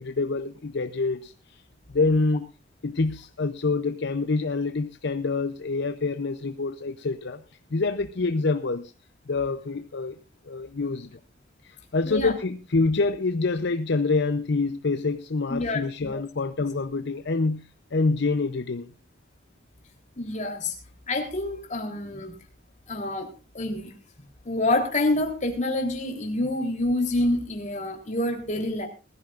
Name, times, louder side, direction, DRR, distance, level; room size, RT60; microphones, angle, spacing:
voice 1, 0.0-1.6 1.9-2.5 2.8-7.4 7.7-8.9 9.3-10.1 10.4-11.2 11.6-17.6 17.9-18.9, left 3 dB, 60° left, 0.7 m, -26 dB
voice 2, 15.5-16.2 20.2-20.7 21.1-22.3 22.9-23.3 23.5-23.9 24.5-28.9, left 2 dB, 40° left, 3.6 m, -27 dB
20.5 x 14.5 x 2.5 m
head